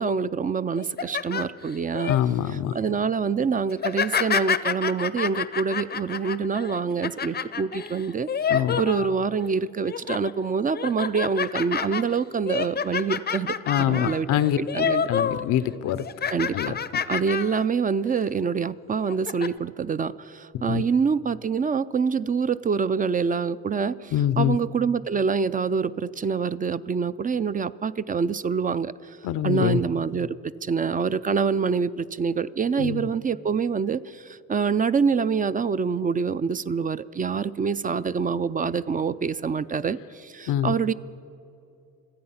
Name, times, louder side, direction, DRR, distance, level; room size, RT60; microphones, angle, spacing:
voice 1, 0.0-2.1 2.7-8.3 8.8-14.3 14.6-15.0 16.3-16.8 17.1-29.2 29.4-40.9, right 5 dB, 30° right, 14 dB, 0.4 m, -26 dB
sound 1, 0.8-2.2 2.7-3.0 3.7-9.5 9.8-10.3 10.7-15.5 15.7-17.7 18.1-18.2 18.9-19.5, left 7 dB, 35° left, 0.6 m, -28 dB
voice 2, 2.1-2.7 8.5-8.8 13.7-14.6 15.1-16.0 16.5-16.8 20.5-20.8 24.1-24.6 29.2-29.8 32.7-33.1 40.5-40.7, left 11 dB, 85° left, 15 dB, 0.7 m, -24 dB
26.0 x 8.7 x 5.7 m, 2.8 s
cardioid pair, 90°, 30 cm